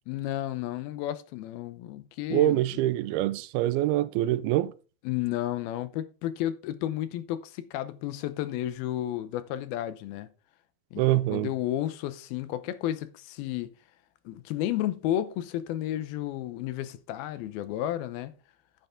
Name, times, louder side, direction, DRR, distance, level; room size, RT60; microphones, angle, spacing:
voice 1, 0.1-2.8 5.0-10.3 10.9-13.7 14.3-18.3, left 13 dB, 85° left, 2.7 m, -32 dB
voice 2, 2.3-4.7 11.0-11.5, right 14 dB, 85° right, 2.5 m, -25 dB
10.0 x 9.3 x 3.7 m
omnidirectional pair, 4.4 m